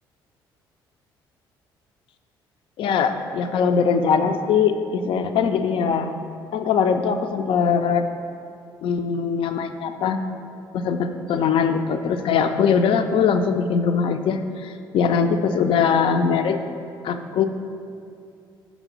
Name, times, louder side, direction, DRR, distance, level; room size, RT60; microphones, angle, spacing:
voice 1, 2.8-6.1 6.5-8.1 8.8-10.2 10.7-16.6 17.0-17.4, left 6 dB, 50° left, 8 dB, 0.4 m, -21 dB
5.4 x 4.0 x 5.9 m, 2.5 s
figure-of-eight pair, 45°, 12 cm